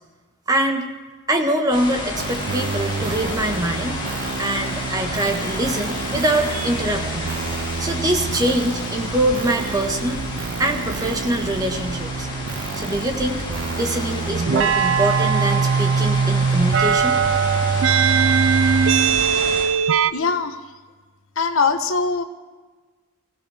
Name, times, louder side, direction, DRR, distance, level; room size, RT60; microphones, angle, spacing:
voice 1, 0.5-0.9 1.3-4.0 4.4-7.3 7.8-10.2 10.6-12.3 12.7-13.4 13.7-17.2, right 1 dB, 20° right, 3 dB, 1.4 m, -23 dB
sound 1, 1.7-19.6, left 2 dB, 25° left, 4.8 m, -31 dB
sound 2, 2.2-20.1, right 6 dB, 70° right, 0.4 m, -23 dB
voice 2, 20.1-20.6 21.4-22.2, left 4 dB, 90° left, 8 dB, 1.1 m, -21 dB
24.5 x 16.5 x 3.5 m, 1.4 s
head